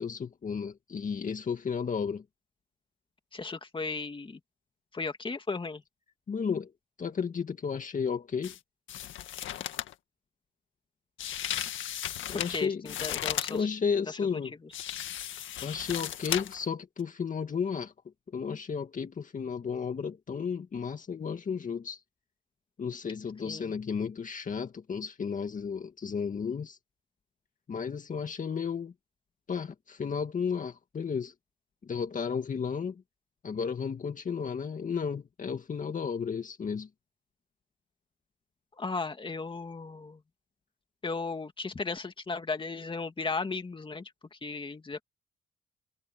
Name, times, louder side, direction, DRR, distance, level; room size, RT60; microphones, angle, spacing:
voice 1, 0.0-2.2 6.3-6.7 7.0-8.5 12.3-12.8 13.5-14.5 15.6-17.9 18.3-22.0 22.8-26.8 27.7-28.9 29.5-31.3 31.8-33.0 33.4-36.9, left 6 dB, 40° left, 1.9 m, -33 dB
voice 2, 3.3-4.4 4.9-5.8 12.3-13.7 14.0-14.7 23.4-23.7 38.8-40.2 41.0-45.0, left 4 dB, 25° left, 2.5 m, -36 dB
sound 1, 8.4-8.6 8.9-9.9 11.2-13.6 14.7-16.7 17.0-17.1, left 11 dB, 75° left, 1.8 m, -35 dB
cardioid pair, 90°, 20 cm